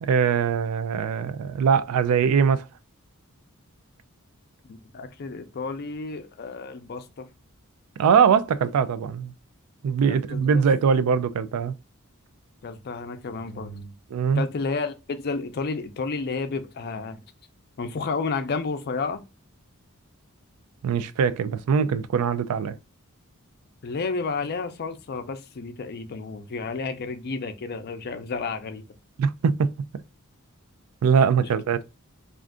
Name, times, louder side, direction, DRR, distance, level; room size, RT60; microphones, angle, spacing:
voice 1, 0.0-2.6 8.0-9.3 9.8-11.7 14.1-14.4 20.8-22.8 29.2-29.7 31.0-31.8, right 6 dB, 85° right, 0.3 m, -22 dB
voice 2, 4.7-7.3 10.1-10.6 12.6-13.9 14.3-17.2 17.8-19.2 23.8-28.8 31.4-31.5, left 4 dB, 45° left, 0.5 m, -31 dB
2.5 x 2.4 x 3.5 m
head